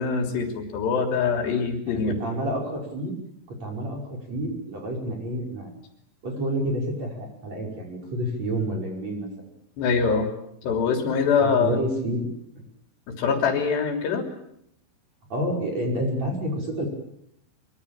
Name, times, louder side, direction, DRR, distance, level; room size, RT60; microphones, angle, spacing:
voice 1, 0.0-2.2 9.8-10.3 10.6-11.8 13.1-14.3, left 5 dB, 65° left, 4 dB, 5.3 m, -24 dB
voice 2, 1.9-3.2 3.5-5.7 6.2-9.3 11.4-12.3 12.6-12.7 15.3-16.9, right 1 dB, 35° right, 1 dB, 6.8 m, -29 dB
24.5 x 24.0 x 8.9 m, 0.75 s
omnidirectional pair, 5.3 m